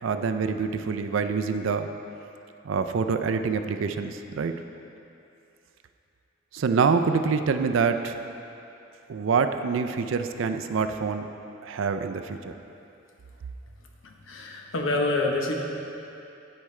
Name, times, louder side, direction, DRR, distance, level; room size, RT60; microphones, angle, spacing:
voice 1, 0.0-1.9 2.6-4.5 6.5-8.2 9.1-11.3 11.6-12.5, right 5 dB, 70° right, 8 dB, 0.4 m, -26 dB
voice 2, 14.0-15.5, left 2 dB, 70° left, 1 dB, 0.9 m, -27 dB
13.0 x 4.8 x 3.2 m, 2.7 s
head